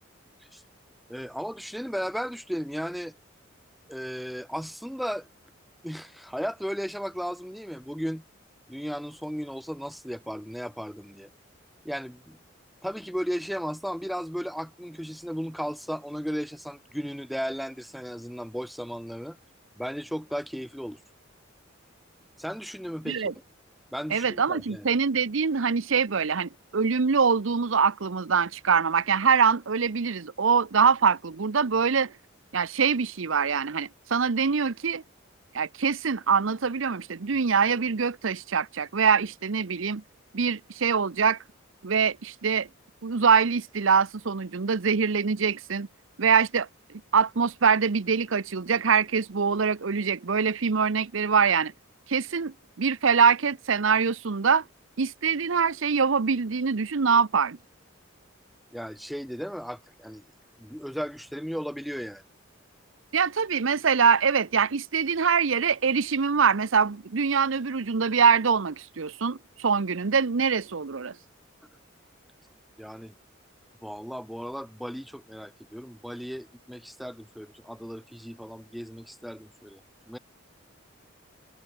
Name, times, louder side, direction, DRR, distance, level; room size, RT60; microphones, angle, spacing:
voice 1, 1.1-3.2 3.9-5.3 5.8-8.2 8.7-11.3 11.8-12.4 12.8-19.4 19.8-21.0 22.4-23.3 23.9-24.9 58.7-60.3 60.6-62.2 72.8-73.1 73.8-80.2, equal, ahead, 1.3 m, -35 dB
voice 2, 24.1-32.1 32.5-35.0 35.5-40.0 40.3-41.4 41.8-42.7 43.0-45.9 46.2-46.7 47.1-51.7 52.1-54.6 55.0-57.6 63.1-71.1, right 6 dB, 75° right, 0.7 m, -24 dB
head